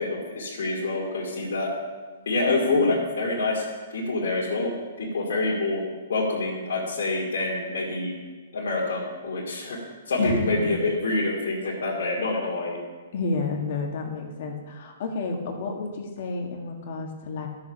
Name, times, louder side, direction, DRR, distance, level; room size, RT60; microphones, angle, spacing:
voice 1, 0.0-1.7 2.3-3.6 3.9-4.7 5.0-5.8 6.1-8.1 8.5-9.8 10.1-12.8, left 2 dB, 75° left, -6 dB, 2.6 m, -26 dB
voice 2, 2.5-2.9 10.2-10.6 13.1-17.5, left 3 dB, 55° left, 2 dB, 1.9 m, -30 dB
13.0 x 6.8 x 5.4 m, 1.3 s
hypercardioid pair, 145°, 0 cm